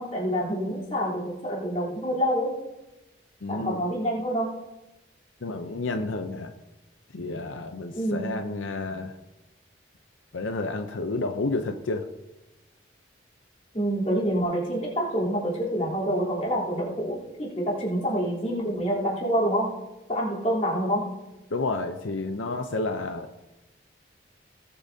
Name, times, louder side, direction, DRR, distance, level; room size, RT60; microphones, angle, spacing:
voice 1, 0.0-2.5 3.5-4.5 7.9-8.3 13.7-19.7 20.1-21.1, equal, 35° left, -5 dB, 3.5 m, -27 dB
voice 2, 3.4-3.8 5.4-6.5 7.1-9.1 10.3-12.1 21.5-23.3, left 3 dB, 85° left, 7 dB, 0.7 m, -30 dB
19.0 x 8.5 x 2.8 m, 0.98 s
head